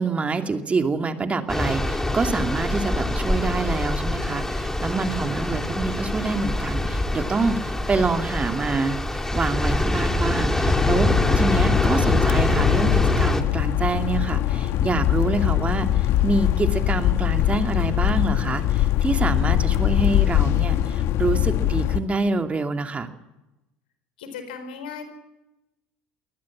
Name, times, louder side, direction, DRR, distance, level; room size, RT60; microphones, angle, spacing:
voice 1, 0.0-23.1, right 3 dB, 25° right, 6 dB, 2.5 m, -26 dB
sound 1, 1.5-13.4, left 1 dB, 10° left, 2.5 m, -24 dB
sound 2, 10.6-22.0, left 13 dB, 60° left, 1.5 m, -22 dB
voice 2, 24.2-25.0, left 6 dB, 80° left, 9 dB, 4.4 m, -36 dB
23.0 x 19.0 x 7.5 m, 0.96 s
hypercardioid pair, 75°, 5 cm